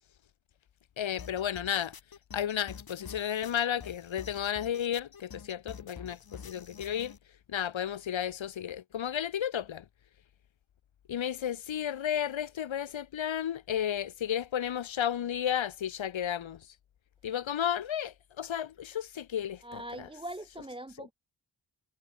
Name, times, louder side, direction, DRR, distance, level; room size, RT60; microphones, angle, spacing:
voice 1, 1.0-1.9 2.3-7.1 7.5-9.9 11.1-16.7 17.2-20.1 21.0-21.1, left 9 dB, 80° left, 1.1 m, -33 dB
sound 1, 1.2-7.2, left 6 dB, 50° left, 1.8 m, -48 dB
voice 2, 19.6-21.1, right 1 dB, 10° right, 0.8 m, -42 dB
wide cardioid pair, 165°, 47 cm